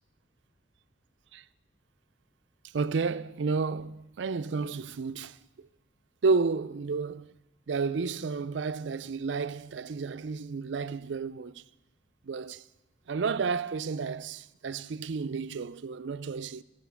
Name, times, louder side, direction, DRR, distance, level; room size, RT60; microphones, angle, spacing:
voice 1, 2.7-5.4 6.2-7.3 7.7-11.6 12.3-12.6 13.1-16.6, right 4 dB, 70° right, 0.4 m, -31 dB
16.0 x 7.7 x 7.0 m
head